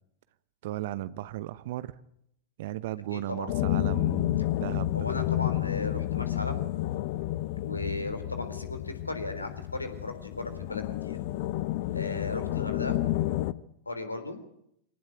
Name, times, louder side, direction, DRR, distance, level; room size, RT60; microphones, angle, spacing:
voice 1, 0.6-1.9 2.6-5.1, right 14 dB, 55° right, 15 dB, 0.9 m, -36 dB
voice 2, 3.1-3.5 4.9-6.6 7.6-11.2 11.9-13.0 13.9-14.4, left 2 dB, 80° left, 9 dB, 3.6 m, -36 dB
sound 1, 3.5-13.5, left 15 dB, 50° left, 0.8 m, -30 dB
24.0 x 18.5 x 9.4 m, 0.75 s
figure-of-eight pair, 90°, 0 cm